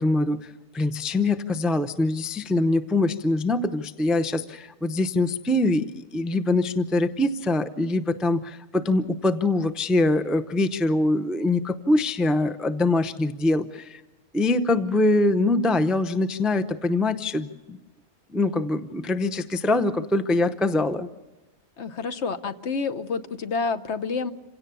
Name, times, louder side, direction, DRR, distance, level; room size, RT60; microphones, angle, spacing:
voice 1, 0.0-14.0 14.3-17.8 18.3-21.1, left 2 dB, ahead, 9 dB, 0.5 m, -23 dB
voice 2, 21.8-24.3, left 4 dB, 60° left, 10 dB, 1.2 m, -28 dB
27.5 x 17.0 x 6.9 m, 1.1 s
omnidirectional pair, 1.4 m